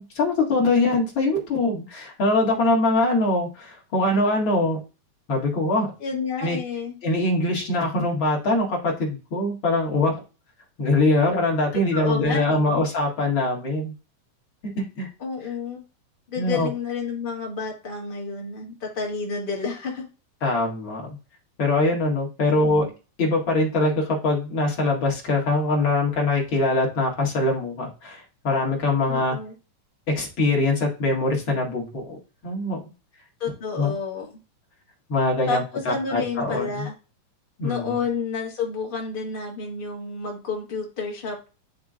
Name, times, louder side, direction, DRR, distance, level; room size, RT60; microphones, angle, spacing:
voice 1, 0.0-4.8 5.3-5.9 6.4-6.6 7.0-10.1 10.8-13.9 14.8-15.1 16.4-16.7 20.4-21.0 21.6-22.9 23.2-29.4 30.2-32.2 32.4-32.8 33.8-34.0 35.1-36.9 37.6-38.0, left 2 dB, 40° left, -2 dB, 2.4 m, -23 dB
voice 2, 6.0-7.0 11.7-12.8 15.2-15.8 16.3-20.0 22.4-22.9 29.1-29.5 33.4-34.4 35.5-36.9 37.6-41.5, left 5 dB, 25° left, -2 dB, 1.2 m, -30 dB
10.5 x 3.6 x 2.5 m, 0.32 s
omnidirectional pair, 3.9 m